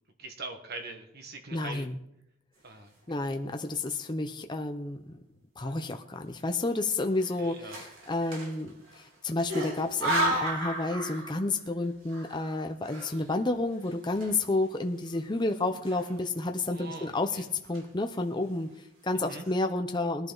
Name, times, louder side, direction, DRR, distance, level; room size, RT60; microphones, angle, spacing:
voice 1, 0.2-1.9 2.6-3.3 7.4-7.8 16.7-17.5 19.2-19.4, right 3 dB, 50° right, 5 dB, 1.5 m, -43 dB
voice 2, 1.5-1.9 3.1-5.2 5.6-20.3, left 2 dB, 20° left, 5 dB, 0.7 m, -31 dB
sound 1, 3.0-3.5 4.1-4.2 4.4-5.1 5.6-5.8 6.8-9.1 9.5-11.6 11.9-14.8 15.0-15.2 15.7-16.5 16.8-17.2 17.5-18.1 18.7-18.8 19.1-19.5, right 1 dB, 80° right, 3.9 m, -35 dB
20.5 x 11.0 x 4.0 m, 0.82 s
head